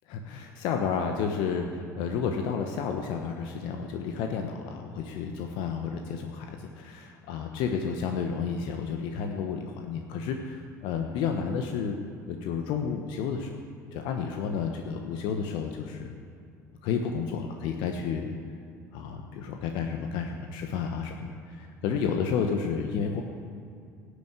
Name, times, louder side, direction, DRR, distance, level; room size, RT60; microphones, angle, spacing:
voice 1, 0.1-12.0 12.3-13.5 13.9-16.1 16.8-18.3 18.9-23.2, left 6 dB, 60° left, 4 dB, 1.2 m, -31 dB
18.0 x 8.2 x 8.3 m, 2.4 s
figure-of-eight pair, 65°, 9 cm